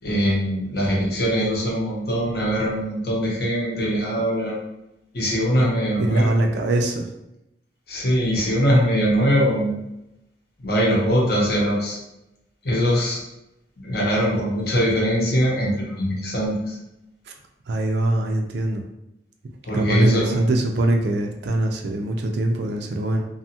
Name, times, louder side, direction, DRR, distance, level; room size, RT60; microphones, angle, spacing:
voice 1, 0.0-4.6 5.1-6.5 7.9-9.7 10.6-12.0 12.6-13.2 13.8-16.8 19.6-20.4, equal, 55° left, -3 dB, 0.8 m, -22 dB
voice 2, 6.0-7.1 17.3-17.4 17.7-18.8 19.7-23.3, right 1 dB, 65° right, 3 dB, 0.4 m, -22 dB
2.5 x 2.4 x 2.7 m, 0.87 s
head